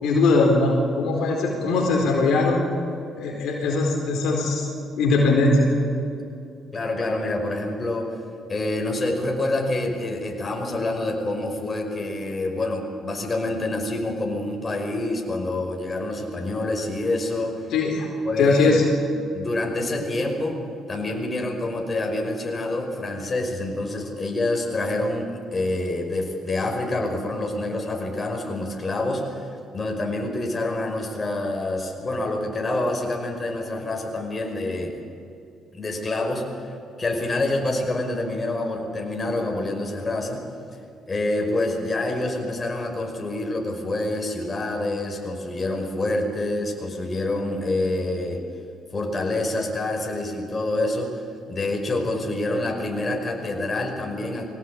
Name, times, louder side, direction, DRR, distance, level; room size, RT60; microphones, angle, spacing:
voice 1, 0.0-2.6 3.2-4.7 5.0-5.7 17.7-18.1 18.4-18.8, left 3 dB, 70° left, 0 dB, 4.4 m, -20 dB
voice 2, 6.7-8.1 8.5-17.7 18.3-18.8 19.3-20.6 20.9-29.4 29.7-34.9 35.7-36.5 37.0-40.5 41.1-48.4 48.9-51.2 51.5-54.5, left 2 dB, 35° left, 2 dB, 5.5 m, -27 dB
22.5 x 18.0 x 8.7 m, 2.6 s
hypercardioid pair, 55°, 0 cm